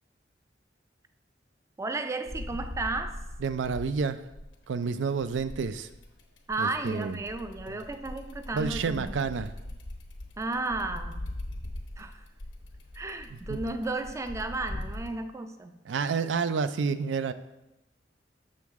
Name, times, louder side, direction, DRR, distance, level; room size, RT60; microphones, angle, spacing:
voice 1, 1.8-3.2 6.5-9.1 10.4-11.2 12.0-12.2 12.9-15.7, right 2 dB, 15° right, 8 dB, 0.3 m, -33 dB
sound 1, 2.3-4.7 5.2-15.1, left 1 dB, 85° left, 1.0 m, -41 dB
voice 2, 3.4-4.2 4.7-5.9 6.6-7.2 7.7-7.8 8.5-9.5 13.3-13.6 15.8-17.3, right 5 dB, 90° right, 12 dB, 0.4 m, -29 dB
7.0 x 6.5 x 3.5 m, 0.96 s
head